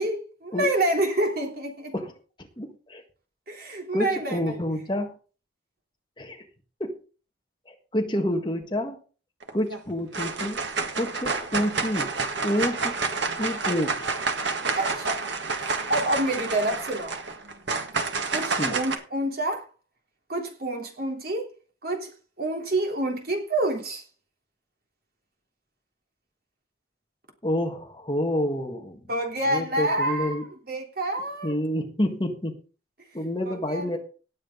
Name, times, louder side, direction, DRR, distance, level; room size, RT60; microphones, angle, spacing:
voice 1, 0.0-1.9 3.5-4.6 14.8-15.2 15.6-17.2 18.3-19.6 20.3-21.5 21.8-22.1 22.4-24.0 29.1-31.5 33.5-33.9, right 1 dB, 50° right, 3.3 m, -28 dB
voice 2, 2.6-3.0 3.9-5.2 6.2-6.4 6.8-6.9 7.7-9.0 9.5-10.6 10.9-12.1 12.4-12.9 13.3-14.0 18.6-18.8 27.4-29.0 29.5-30.4 31.4-32.6 33.1-34.0, equal, 25° left, 1.7 m, -28 dB
sound 1, 9.4-9.8 10.1-18.9, right 4 dB, 75° right, 1.7 m, -29 dB
18.0 x 7.6 x 3.9 m
head